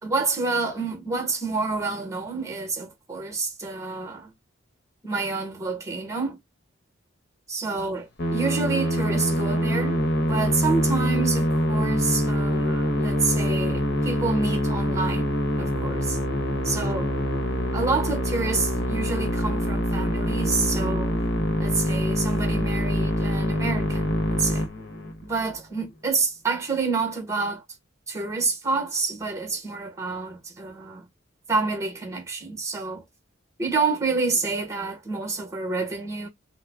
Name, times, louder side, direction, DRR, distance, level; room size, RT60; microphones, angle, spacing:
voice 1, 0.0-4.3 5.0-6.4 7.5-10.0 10.3-16.2 16.6-17.1 17.7-21.1 21.6-24.7 25.2-27.6 28.1-31.1 31.5-33.0 33.6-36.3, right 4 dB, 15° right, 1.0 m, -28 dB
Musical instrument, 8.2-25.3, equal, 60° left, 1.0 m, -25 dB
3.5 x 2.0 x 3.4 m
head